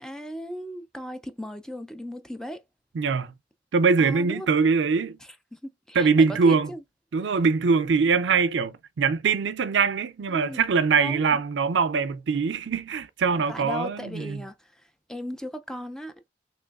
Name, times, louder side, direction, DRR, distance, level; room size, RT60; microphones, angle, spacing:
voice 1, 0.0-2.6 4.0-4.6 5.5-6.8 7.2-7.3 10.3-10.6 11.0-11.4 13.5-14.8 15.1-16.3, equal, 5° left, 0.3 m, -36 dB
voice 2, 2.9-3.3 3.7-5.2 5.9-6.7 7.1-14.4, right 5 dB, 80° right, 0.4 m, -23 dB
3.3 x 2.9 x 2.3 m
head